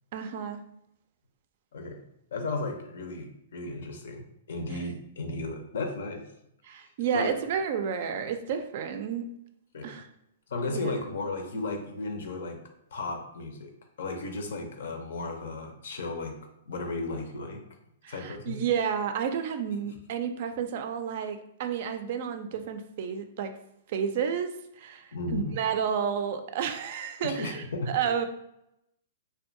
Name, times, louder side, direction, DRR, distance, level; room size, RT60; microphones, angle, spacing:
voice 1, 0.1-0.6 6.6-9.3 9.8-10.1 10.7-10.9 18.0-23.5 23.9-24.5 24.8-28.3, right 7 dB, 55° right, 8 dB, 0.3 m, -31 dB
voice 2, 1.7-2.0 2.3-6.2 6.8-7.3 9.7-10.0 10.5-12.6 12.9-13.7 14.0-16.3 16.7-17.6 18.1-18.6 25.1-25.5 27.2-27.9, left 2 dB, 75° left, 4 dB, 0.5 m, -34 dB
2.6 x 2.2 x 2.5 m, 0.80 s
hypercardioid pair, 135°, 0 cm